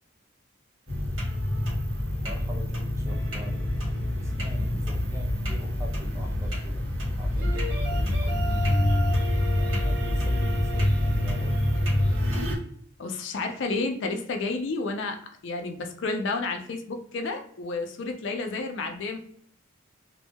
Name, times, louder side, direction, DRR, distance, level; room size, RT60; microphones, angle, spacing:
sound 1, 0.9-12.6, left 1 dB, 75° right, 1.4 m, -26 dB
voice 1, 2.2-3.6 4.2-11.6, equal, 15° right, 1 dB, 0.5 m, -43 dB
sound 2, 3.1-5.5 7.4-12.2, equal, 55° right, 0.6 m, -37 dB
voice 2, 13.0-19.2, left 3 dB, 60° left, 5 dB, 0.4 m, -31 dB
2.6 x 2.2 x 2.7 m, 0.62 s
head